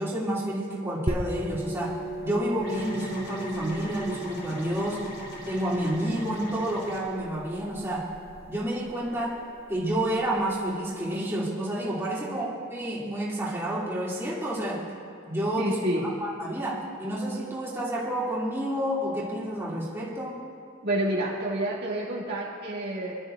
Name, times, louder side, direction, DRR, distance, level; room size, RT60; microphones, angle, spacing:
voice 1, 0.0-2.0 2.2-5.0 5.5-8.1 8.5-9.4 9.7-14.8 15.3-20.4, right 1 dB, 10° right, -7 dB, 2.6 m, -29 dB
sound 1, 1.1-10.4, right 2 dB, 30° right, 0.8 m, -38 dB
sound 2, 2.6-7.0, equal, 45° left, 4.0 m, -41 dB
voice 2, 15.6-16.0 20.8-23.1, right 1 dB, 50° right, -5 dB, 2.4 m, -29 dB
26.0 x 12.5 x 2.6 m, 2.3 s
head